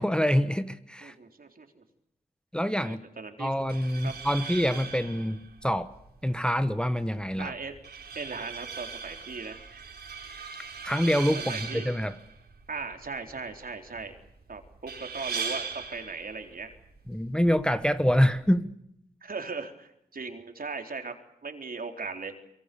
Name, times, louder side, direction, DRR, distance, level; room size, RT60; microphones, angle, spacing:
voice 1, 0.0-1.1 2.5-3.0 3.4-5.9 6.2-7.5 10.8-12.1 17.1-18.7, equal, 5° left, 11 dB, 1.2 m, -26 dB
voice 2, 1.0-1.8 2.8-3.5 4.0-4.1 7.4-7.7 8.1-9.6 11.4-11.9 12.7-14.2 14.5-16.7 19.2-21.1 21.4-22.3, right 4 dB, 60° right, 5 dB, 3.9 m, -38 dB
sound 1, 3.6-18.6, right 5 dB, 75° right, 4.8 m, -40 dB
26.5 x 23.5 x 7.0 m, 0.77 s
wide cardioid pair, 75°, 17 cm